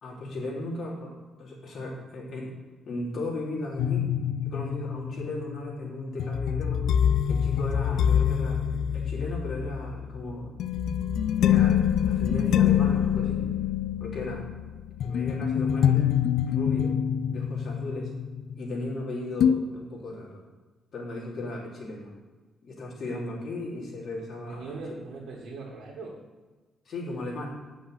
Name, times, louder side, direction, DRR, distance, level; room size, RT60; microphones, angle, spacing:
voice 1, 0.0-2.6 2.9-4.1 4.4-6.9 7.3-10.5 10.8-13.5 14.0-14.5 15.0-16.1 16.5-17.0 17.3-18.1 18.6-20.4 20.9-22.1 22.6-24.8 26.8-27.5, left 2 dB, 50° left, -3 dB, 3.0 m, -36 dB
sound 1, 3.8-19.0 19.4-19.6, left 9 dB, 75° left, 0.4 m, -25 dB
voice 2, 24.5-26.2, right 3 dB, 85° right, -3 dB, 2.1 m, -40 dB
9.7 x 6.2 x 6.4 m, 1.3 s
cardioid pair, 145°, 0 cm